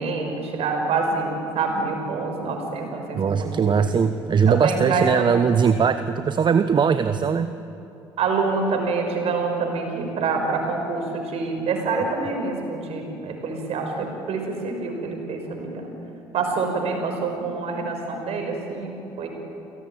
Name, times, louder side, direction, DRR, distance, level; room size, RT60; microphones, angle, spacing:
voice 1, 0.0-3.7 4.5-5.3 7.1-7.2 8.2-15.9 16.3-19.3, right 4 dB, 60° right, 3 dB, 5.8 m, -26 dB
voice 2, 3.1-7.5, right 6 dB, 40° right, 10 dB, 1.0 m, -20 dB
29.0 x 17.5 x 9.1 m, 2.9 s
hypercardioid pair, 55°, 12 cm